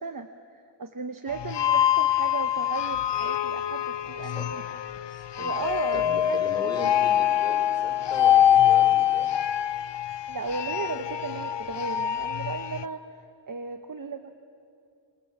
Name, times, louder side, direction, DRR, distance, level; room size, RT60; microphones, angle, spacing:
voice 1, 0.0-4.6 5.4-6.9 10.3-14.3, right 4 dB, 50° right, 7 dB, 1.0 m, -35 dB
sound 1, 1.3-12.8, left 11 dB, 75° left, 0.6 m, -24 dB
voice 2, 5.1-5.5 5.9-9.3, left 1 dB, 10° left, 2 dB, 4.6 m, -39 dB
26.0 x 23.0 x 7.3 m, 2.4 s
wide cardioid pair, 70°, 43 cm